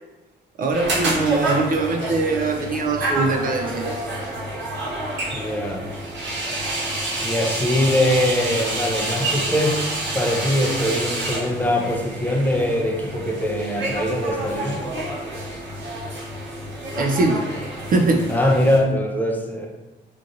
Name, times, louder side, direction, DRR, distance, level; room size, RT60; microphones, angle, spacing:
voice 1, 0.6-3.9 17.0-17.5 17.9-18.4, right 3 dB, 45° right, 3 dB, 0.4 m, -22 dB
sound 1, 0.7-18.8, right 1 dB, 65° right, 1.0 m, -28 dB
voice 2, 5.3-5.8 7.2-9.8 10.1-14.8 18.3-19.7, left 1 dB, 10° left, 0 dB, 0.5 m, -22 dB
2.9 x 2.5 x 2.6 m, 1.1 s
cardioid pair, 90°, 20 cm